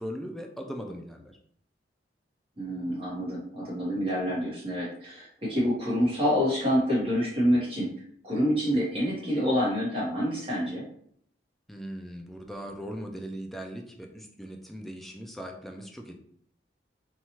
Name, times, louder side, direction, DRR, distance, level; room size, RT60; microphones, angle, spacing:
voice 1, 0.0-1.4 11.7-16.2, equal, ahead, 2 dB, 0.3 m, -39 dB
voice 2, 2.6-7.9 8.2-10.8, equal, 30° right, -6 dB, 1.0 m, -27 dB
2.8 x 2.3 x 2.8 m, 0.65 s
head